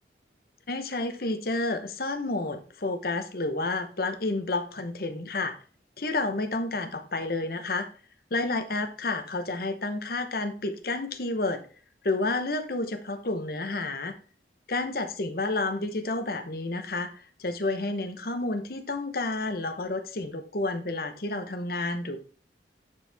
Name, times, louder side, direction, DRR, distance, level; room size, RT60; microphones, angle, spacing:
voice 1, 0.7-5.5 6.0-7.9 8.3-11.6 12.0-14.1 14.7-22.2, left 2 dB, 55° left, 8 dB, 0.9 m, -30 dB
9.7 x 4.7 x 3.4 m, 0.40 s
head